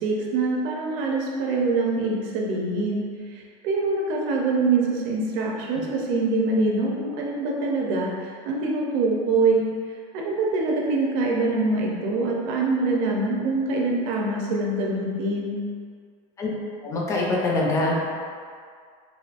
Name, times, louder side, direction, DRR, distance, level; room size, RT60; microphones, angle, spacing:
voice 1, 0.0-3.0 3.6-8.1 8.5-9.7 10.1-15.6, right 3 dB, 55° right, -2 dB, 0.7 m, -24 dB
voice 2, 16.8-17.9, left 2 dB, 20° left, -3 dB, 0.5 m, -24 dB
5.0 x 2.6 x 2.5 m, 2.1 s
cardioid pair, 165°, 16 cm